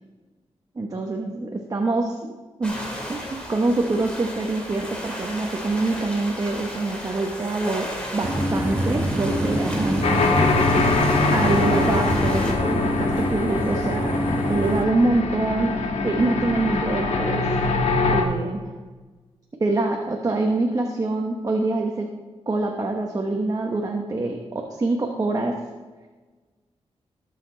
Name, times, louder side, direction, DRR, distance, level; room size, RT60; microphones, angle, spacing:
voice 1, 0.8-2.2 2.6-2.8 3.1-10.3 11.3-14.2 14.5-17.5 18.1-18.6 19.6-22.1 22.5-25.6, right 2 dB, 30° right, 1 dB, 1.1 m, -25 dB
sound 1, 2.6-12.5, equal, 10° left, 2.6 m, -34 dB
sound 2, 8.2-14.8, right 1 dB, 15° right, 1.4 m, -25 dB
sound 3, 10.0-18.2, left 3 dB, 80° left, 1.4 m, -23 dB
19.0 x 6.8 x 4.0 m, 1.3 s
wide cardioid pair, 135°, 11 cm